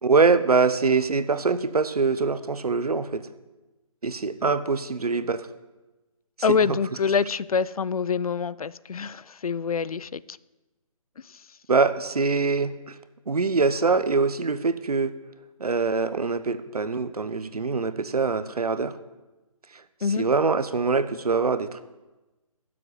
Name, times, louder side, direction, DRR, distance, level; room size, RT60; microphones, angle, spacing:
voice 1, 0.0-3.3 4.0-5.5 6.5-6.8 11.7-13.0 13.3-15.1 15.6-19.0 19.7-19.8 20.2-21.8, right 4 dB, 80° right, 12 dB, 1.0 m, -24 dB
voice 2, 6.4-10.4 11.3-11.4 20.0-20.2, left 6 dB, 75° left, 20 dB, 0.5 m, -26 dB
10.5 x 7.6 x 9.7 m, 1.1 s
figure-of-eight pair, 155°, 19 cm